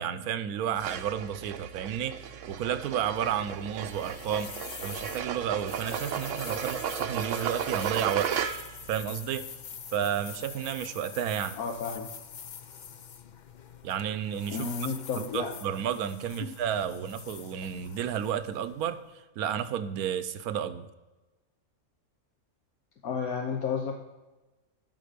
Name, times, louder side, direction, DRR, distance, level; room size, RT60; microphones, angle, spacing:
voice 1, 0.0-4.5 4.8-8.3 8.9-9.5 9.9-11.6 13.8-14.7 15.1-19.0 19.4-20.9, right 9 dB, 80° right, 11 dB, 1.2 m, -31 dB
sound 1, 0.8-8.9, right 8 dB, 65° right, 1.0 m, -35 dB
sound 2, 2.9-19.1, left 7 dB, 60° left, 0.4 m, -45 dB
voice 2, 11.6-12.1 14.5-15.5 16.4-16.5 23.0-24.0, left 5 dB, 75° left, 2 dB, 1.5 m, -32 dB
14.0 x 5.9 x 5.1 m, 1.1 s
omnidirectional pair, 1.6 m